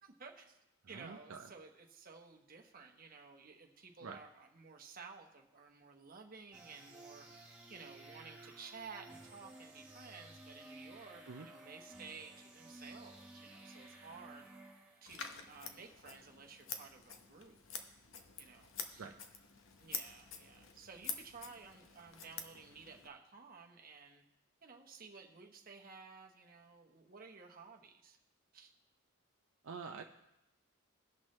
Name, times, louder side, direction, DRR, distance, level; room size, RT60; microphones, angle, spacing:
voice 1, 0.0-0.6 0.9-14.5 15.0-17.6 18.4-19.1 19.8-24.2 24.6-28.2 28.5-28.7, right 5 dB, 40° right, 2 dB, 1.0 m, -54 dB
voice 2, 0.9-1.4 4.0-4.2 11.3-11.5 19.0-19.1 29.6-30.0, right 5 dB, 70° right, 3 dB, 0.5 m, -46 dB
sound 1, 6.5-15.4, right 2 dB, 5° right, 1.3 m, -55 dB
Scissors, 15.1-23.1, left 6 dB, 65° left, 0.8 m, -47 dB
18.5 x 6.1 x 3.2 m, 0.90 s
head